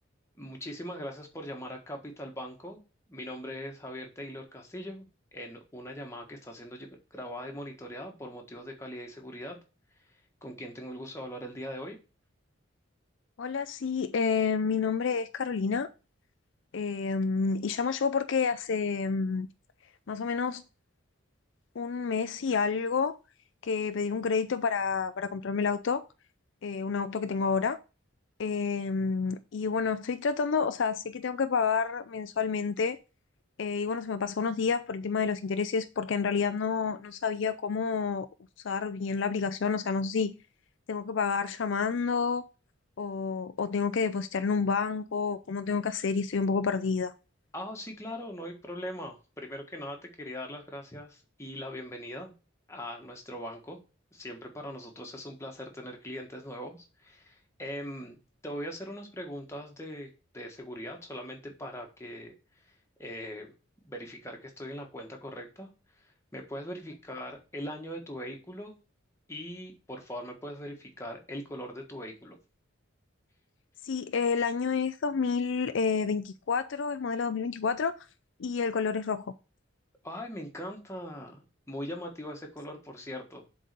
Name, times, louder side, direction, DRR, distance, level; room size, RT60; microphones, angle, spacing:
voice 1, 0.4-2.8 3.1-5.0 5.3-9.6 10.4-12.0 47.5-52.3 52.7-53.8 54.1-58.2 58.4-62.3 62.7-63.5 63.8-65.7 66.3-68.7 69.3-72.4 80.0-83.5, equal, 15° left, 1.5 m, -41 dB
voice 2, 13.4-15.9 16.7-19.5 20.1-20.6 21.8-23.2 23.6-26.0 26.6-27.8 28.4-33.0 33.6-38.3 38.6-40.3 40.9-42.4 43.0-47.1 73.8-77.9 78.4-79.3, left 5 dB, 60° left, 0.4 m, -29 dB
7.3 x 4.0 x 6.7 m
head